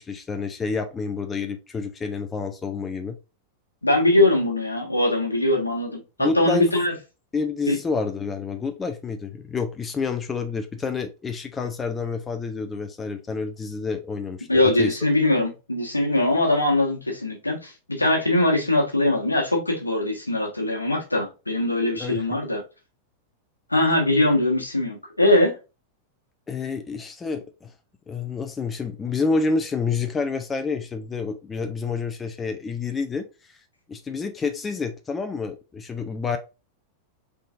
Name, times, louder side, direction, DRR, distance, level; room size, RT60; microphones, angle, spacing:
voice 1, 0.0-3.2 6.2-6.6 7.3-15.0 21.9-22.3 26.5-27.7 28.1-33.6 33.9-36.4, left 4 dB, 20° left, 0.5 m, -29 dB
voice 2, 3.8-6.9 7.7-7.8 14.5-22.6 23.7-25.5, left 1 dB, 85° left, 1.3 m, -21 dB
3.8 x 3.8 x 2.4 m
figure-of-eight pair, 90°, 0 cm